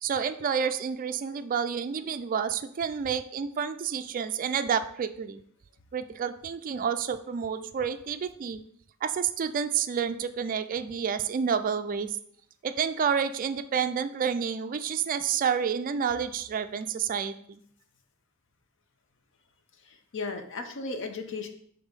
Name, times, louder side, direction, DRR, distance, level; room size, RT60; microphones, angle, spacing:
voice 1, 0.0-5.4 5.9-8.6 9.0-12.2 12.6-17.6, right 7 dB, 40° right, 10 dB, 0.3 m, -29 dB
voice 2, 19.9-21.5, left 3 dB, 60° left, 6 dB, 0.7 m, -35 dB
5.4 x 3.5 x 5.1 m, 0.65 s
head